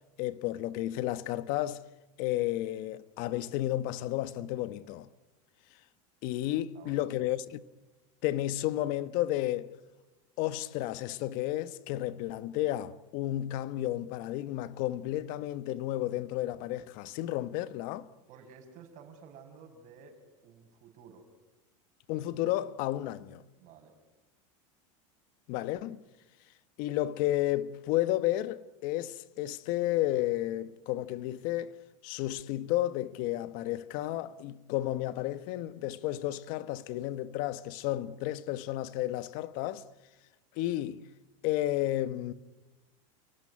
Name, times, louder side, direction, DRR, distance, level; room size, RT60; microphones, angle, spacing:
voice 1, 0.2-1.8 2.2-5.1 6.2-7.6 8.2-9.7 10.4-18.1 22.1-23.4 25.5-26.0 26.8-31.7 32.0-39.8 40.6-41.0 41.4-42.3, left 14 dB, 55° left, 1.2 m, -32 dB
voice 2, 6.7-7.3 18.3-21.3 23.6-23.9, right 6 dB, 50° right, 6.5 m, -53 dB
29.0 x 18.5 x 9.7 m
supercardioid pair, 130°, 17 cm